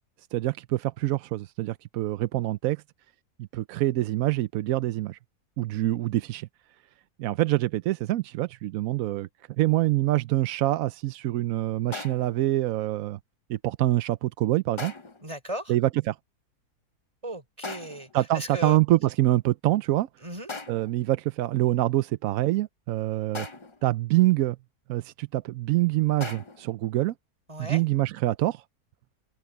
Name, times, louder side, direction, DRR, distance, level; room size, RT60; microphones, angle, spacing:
voice 1, 0.3-2.8 3.5-5.2 5.6-6.5 7.2-9.3 9.6-13.2 13.5-14.9 15.7-16.2 18.1-20.1 20.7-23.5 23.8-24.6 24.9-27.1 27.6-28.6, right 16 dB, 70° right, 0.9 m, -25 dB
sound 1, 11.9-12.4 14.8-15.3 17.6-18.1 20.5-21.0 23.3-23.9 26.2-26.7, left 3 dB, 25° left, 0.7 m, -39 dB
voice 2, 15.2-15.7 17.2-18.1 18.3-18.8 20.2-20.5 27.5-27.8, right 1 dB, 20° right, 5.1 m, -35 dB
omnidirectional pair, 1.7 m